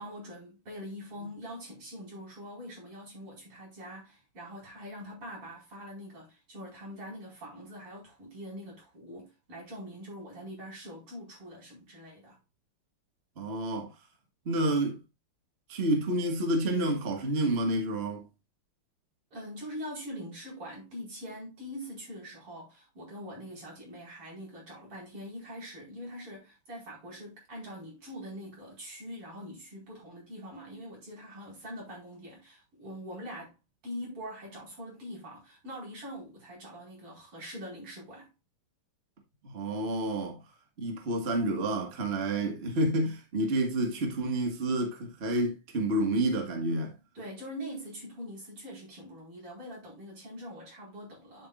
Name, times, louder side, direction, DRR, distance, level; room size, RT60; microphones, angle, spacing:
voice 1, 0.0-12.4 19.3-33.5 33.8-38.3 47.2-51.5, equal, 85° right, 5.7 m, -43 dB
voice 2, 13.4-13.9 14.4-15.0 15.7-18.2 39.4-40.4 40.8-46.9, right 1 dB, 30° right, 1.7 m, -29 dB
9.0 x 7.8 x 2.4 m
omnidirectional pair, 2.4 m